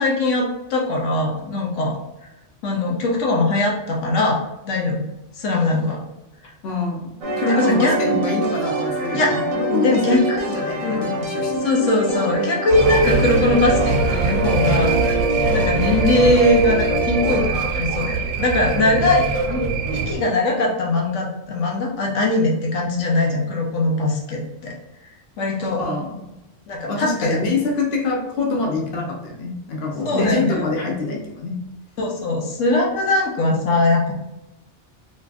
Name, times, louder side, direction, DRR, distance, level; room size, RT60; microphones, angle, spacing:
voice 1, 0.0-2.0 2.6-5.0 5.3-6.0 7.3-8.0 9.1-9.4 9.7-11.1 11.6-15.0 15.5-24.7 25.4-25.8 26.7-27.4 30.0-30.6 32.0-34.1, left 2 dB, 80° left, -1 dB, 1.1 m, -21 dB
voice 2, 6.6-11.6 25.7-26.3 26.9-31.6, left 3 dB, 60° left, 1 dB, 0.9 m, -25 dB
sound 1, 7.2-17.5, right 1 dB, 55° right, 0.4 m, -24 dB
sound 2, 12.7-20.1, right 4 dB, 85° right, 1.0 m, -23 dB
4.1 x 2.8 x 2.4 m, 0.93 s
omnidirectional pair, 1.3 m